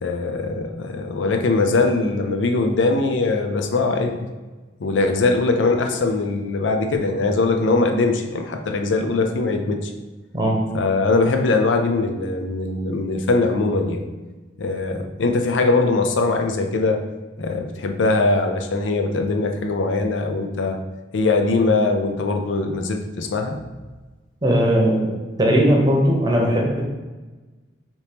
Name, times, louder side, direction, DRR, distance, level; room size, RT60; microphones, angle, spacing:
voice 1, 0.0-4.3 4.8-9.9 10.7-14.0 14.6-17.0 17.4-20.8 21.1-23.6, left 3 dB, 85° left, 5 dB, 0.5 m, -21 dB
voice 2, 24.4-26.8, equal, 20° right, -1 dB, 0.8 m, -18 dB
4.2 x 2.9 x 3.4 m, 1.3 s
head